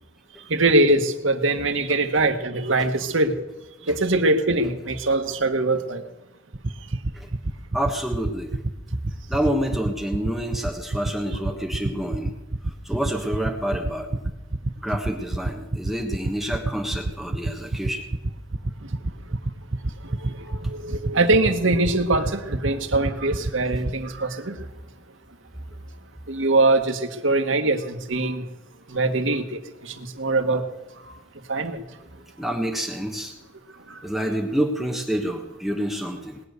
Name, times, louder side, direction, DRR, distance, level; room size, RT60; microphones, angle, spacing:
voice 1, 0.5-3.3 3.9-6.0 20.5-24.6 26.3-28.4 28.9-29.4 29.8-30.6 31.5-31.8, right 2 dB, 80° right, 1.5 m, -22 dB
sound 1, 6.5-23.9, right 2 dB, 50° right, 0.9 m, -25 dB
voice 2, 7.7-8.6 9.3-12.3 12.6-14.2 14.8-18.0 32.4-33.3 34.0-36.4, equal, ahead, 1.3 m, -28 dB
20.0 x 9.4 x 6.6 m
head